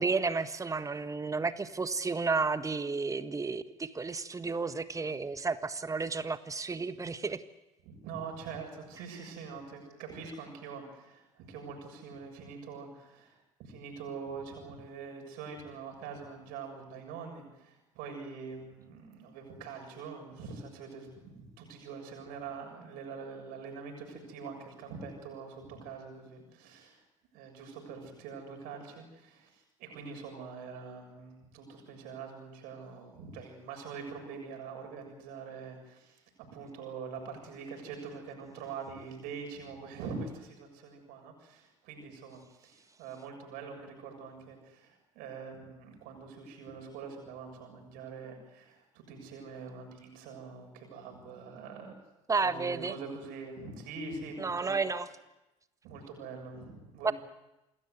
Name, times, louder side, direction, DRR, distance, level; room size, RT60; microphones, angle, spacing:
voice 1, 0.0-7.4 52.3-52.9 54.4-55.1 57.0-57.1, right 4 dB, 20° right, 12 dB, 1.5 m, -32 dB
voice 2, 7.8-27.0 27.3-36.2 36.5-51.9 52.4-54.8 55.8-57.1, right 5 dB, 60° right, 3 dB, 7.0 m, -44 dB
27.5 x 20.0 x 8.1 m, 0.97 s
figure-of-eight pair, 60°, 17 cm